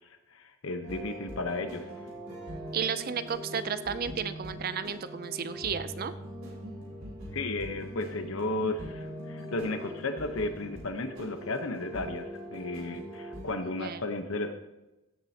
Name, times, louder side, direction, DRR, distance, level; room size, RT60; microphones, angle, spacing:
voice 1, 0.3-1.9 7.3-14.5, left 2 dB, 70° left, 7 dB, 1.0 m, -34 dB
sound 1, 0.8-13.5, equal, 80° right, 3.7 m, -42 dB
voice 2, 2.7-6.1 13.8-14.0, right 7 dB, 45° right, 13 dB, 0.4 m, -33 dB
16.0 x 7.6 x 2.9 m, 1.0 s
head